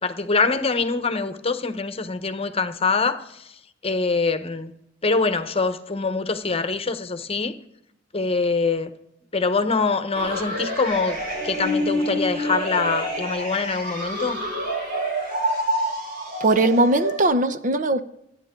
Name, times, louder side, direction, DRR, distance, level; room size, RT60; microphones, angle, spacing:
voice 1, 0.0-3.6 3.8-4.7 5.0-7.6 8.1-8.9 9.3-14.4, left 4 dB, 30° left, 1.0 m, -24 dB
sound 1, 10.1-17.2, equal, 60° right, 4.1 m, -27 dB
voice 2, 16.4-18.0, right 2 dB, 45° right, 0.8 m, -19 dB
27.5 x 9.8 x 3.8 m
head